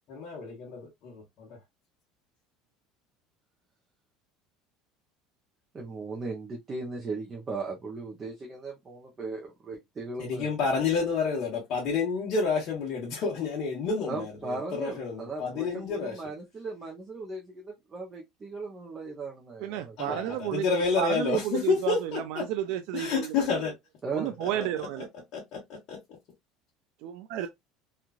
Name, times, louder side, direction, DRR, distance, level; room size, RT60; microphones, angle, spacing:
voice 1, 0.1-1.6 10.2-16.2 20.0-22.5 22.9-23.7 24.4-24.5 25.3-26.0, left 5 dB, 50° left, 1.1 m, -29 dB
voice 2, 5.7-10.7 14.1-20.3 24.0-24.7, right 3 dB, 25° right, 0.6 m, -38 dB
voice 3, 19.6-20.7 21.0-23.3 24.1-25.1 27.0-27.5, right 12 dB, 70° right, 0.3 m, -31 dB
3.1 x 2.4 x 2.3 m
cardioid pair, 150°, 0 cm